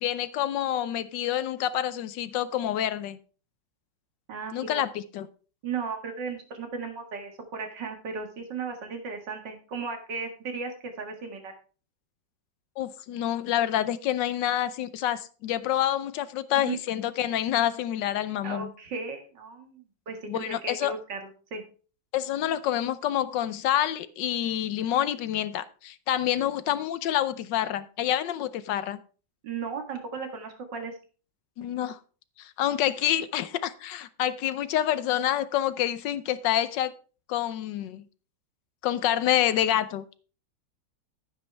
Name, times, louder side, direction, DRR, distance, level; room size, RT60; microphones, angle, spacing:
voice 1, 0.0-3.2 4.5-5.3 12.8-18.7 20.3-20.9 22.1-29.0 31.6-32.0 32.4-36.9 37.3-38.0 38.8-40.2, left 11 dB, 80° left, 1.4 m, -27 dB
voice 2, 4.3-4.8 5.6-10.7 11.0-11.5 16.5-16.8 18.4-21.6 29.4-30.9, right 5 dB, 75° right, 2.5 m, -36 dB
11.0 x 9.7 x 3.4 m
omnidirectional pair, 1.9 m